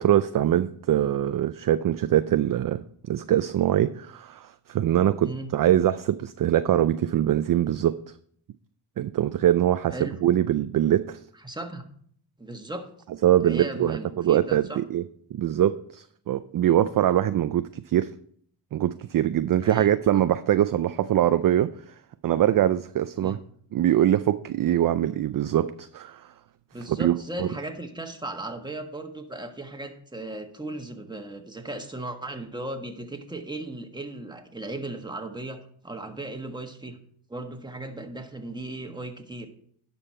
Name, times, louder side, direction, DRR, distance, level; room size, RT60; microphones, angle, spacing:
voice 1, 0.0-8.0 9.0-11.2 13.2-15.0 15.3-18.1 18.7-21.7 22.2-23.4 23.7-26.3 27.0-27.5, right 11 dB, 45° right, 12 dB, 0.4 m, -23 dB
voice 2, 11.4-11.8 12.4-12.9 13.4-14.8 19.6-20.2 23.2-23.4 26.7-37.0 37.3-39.5, right 2 dB, 10° right, 4 dB, 1.4 m, -36 dB
11.0 x 5.5 x 4.3 m, 0.62 s
cardioid pair, 60°, 47 cm